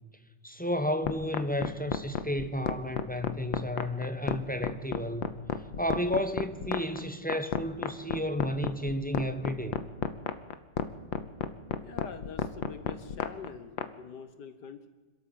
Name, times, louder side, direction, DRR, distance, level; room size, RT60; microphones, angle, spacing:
voice 1, 0.4-5.3 5.8-9.8, equal, 5° left, 0.8 m, -32 dB
sound 1, 1.0-13.9, left 9 dB, 80° left, 1.8 m, -31 dB
voice 2, 11.8-14.9, left 6 dB, 65° left, 1.6 m, -44 dB
27.0 x 13.0 x 7.6 m
omnidirectional pair, 2.1 m